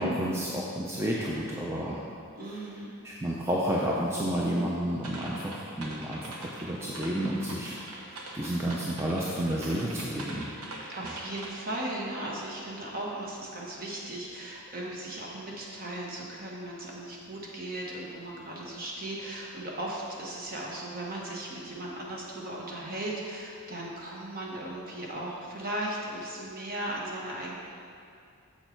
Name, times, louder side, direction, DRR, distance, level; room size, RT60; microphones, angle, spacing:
voice 1, 0.0-2.0 3.0-7.8 8.1-10.5, equal, 10° right, -5 dB, 0.5 m, -30 dB
voice 2, 2.3-2.9 10.9-27.5, right 1 dB, 40° right, -3 dB, 1.3 m, -37 dB
sound 1, 5.0-11.5, right 2 dB, 80° right, 1.1 m, -43 dB
7.0 x 6.7 x 4.4 m, 2.4 s
head